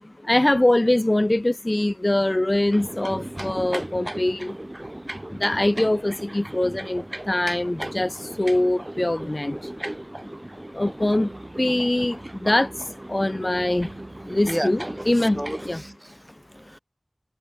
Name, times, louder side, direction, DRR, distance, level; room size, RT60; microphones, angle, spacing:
voice 1, 0.0-4.6 5.3-9.7 10.7-13.9 14.2-15.8, left 1 dB, 45° left, 0.6 m, -23 dB
sound 1, 2.7-15.8, right 1 dB, 30° right, 1.4 m, -36 dB
sound 2, 11.0-16.0, right 2 dB, 70° right, 7.7 m, -46 dB
voice 2, 15.1-16.8, equal, 5° right, 1.2 m, -33 dB
wide cardioid pair, 40°, 0 cm